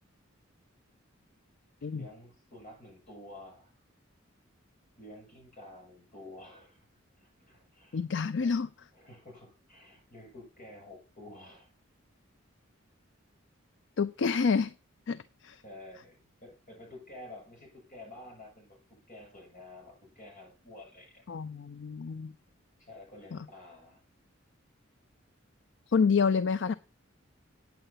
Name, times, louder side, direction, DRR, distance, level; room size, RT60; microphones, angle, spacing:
voice 1, 1.8-3.8 5.0-6.9 7.1-8.0 8.4-8.6 8.9-11.7 15.6-21.3 22.8-24.0, left 1 dB, 40° left, 6.9 m, -50 dB
voice 2, 7.9-8.7 14.0-14.7 15.1-15.6 21.3-22.3 23.3-23.5 25.9-26.7, left 5 dB, 60° left, 0.4 m, -28 dB
9.2 x 7.9 x 5.7 m
head